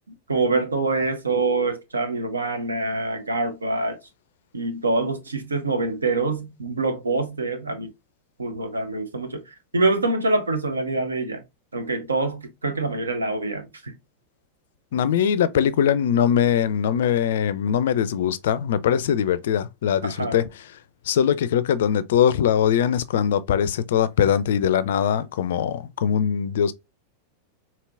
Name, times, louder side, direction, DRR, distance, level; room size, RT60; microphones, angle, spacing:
voice 1, 0.3-4.0 4.5-7.9 8.4-11.4 11.7-14.0 20.0-20.4, right 3 dB, 75° right, 0.8 m, -25 dB
voice 2, 14.9-20.5 21.1-26.7, left 8 dB, 60° left, 0.4 m, -21 dB
4.4 x 2.9 x 2.4 m
figure-of-eight pair, 90°, 0 cm